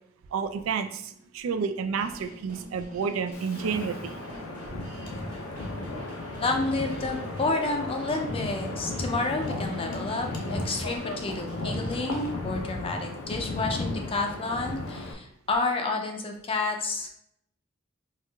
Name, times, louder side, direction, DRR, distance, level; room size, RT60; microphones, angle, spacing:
voice 1, 0.3-4.3 4.7-4.9, right 6 dB, 75° right, 8 dB, 0.3 m, -30 dB
sound 1, 2.0-12.3, right 2 dB, 40° right, 0.7 m, -47 dB
Wind, 3.3-15.1, left 2 dB, 90° left, 0.6 m, -35 dB
voice 2, 6.4-17.1, left 3 dB, 25° left, 2 dB, 0.4 m, -30 dB
4.4 x 2.4 x 2.3 m, 0.73 s
head